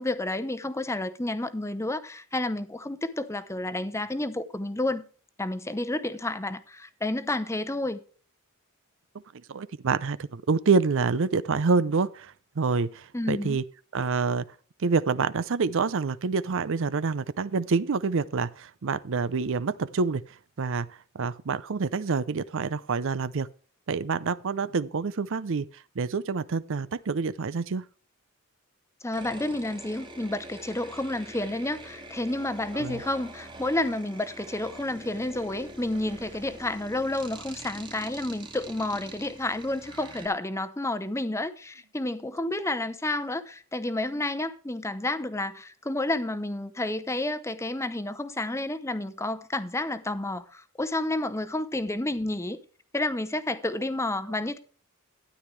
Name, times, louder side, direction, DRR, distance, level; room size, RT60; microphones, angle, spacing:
voice 1, 0.0-5.0 5.4-8.0 13.1-13.6 29.0-52.6 52.9-54.6, left 2 dB, 15° left, 0.8 m, -30 dB
voice 2, 9.5-13.6 13.9-14.4 14.8-20.2 20.6-23.5 23.9-27.8 32.7-33.0, right 4 dB, 60° right, 0.6 m, -27 dB
sound 1, 29.1-40.3, right 2 dB, 20° right, 1.8 m, -45 dB
13.0 x 10.5 x 3.3 m
head